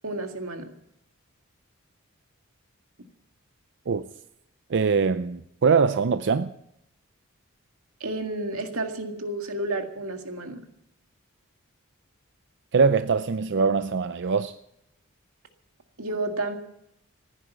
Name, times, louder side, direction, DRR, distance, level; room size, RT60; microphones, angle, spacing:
voice 1, 0.0-0.7 8.0-10.6 16.0-16.6, right 2 dB, 90° right, 2.0 m, -31 dB
voice 2, 4.7-6.5 12.7-14.5, right 5 dB, 55° right, 0.5 m, -22 dB
15.5 x 10.0 x 8.1 m
head